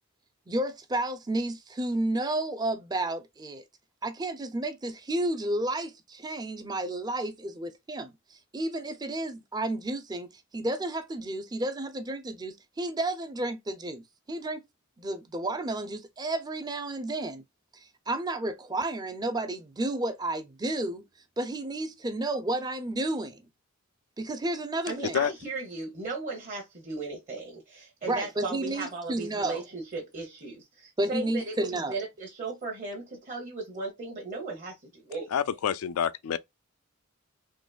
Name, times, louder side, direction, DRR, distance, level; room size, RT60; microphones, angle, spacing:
voice 1, 0.5-3.6 4.0-10.3 10.5-14.6 15.0-17.4 18.1-21.0 21.4-23.4 24.2-25.2 28.0-29.6 31.0-32.0, right 2 dB, 20° right, 0.5 m, -31 dB
voice 2, 24.9-35.3, right 3 dB, 35° right, 0.9 m, -36 dB
voice 3, 35.3-36.4, left 8 dB, 80° left, 0.4 m, -27 dB
3.9 x 3.0 x 2.3 m
head